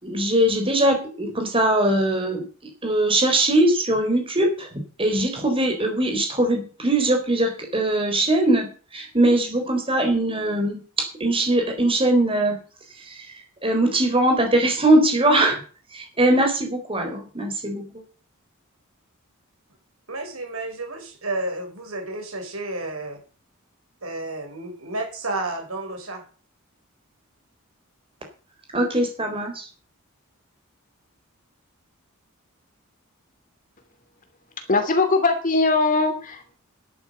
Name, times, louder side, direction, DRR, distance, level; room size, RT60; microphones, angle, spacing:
voice 1, 0.0-12.6 12.9-15.6 15.9-18.0 28.7-29.7, right 1 dB, 25° right, 4 dB, 4.0 m, -21 dB
voice 2, 20.1-23.2 24.0-26.2, right 2 dB, 85° right, 3 dB, 5.1 m, -31 dB
voice 3, 34.6-36.5, left 3 dB, 40° left, 6 dB, 2.7 m, -21 dB
11.0 x 8.9 x 7.8 m, 0.39 s
head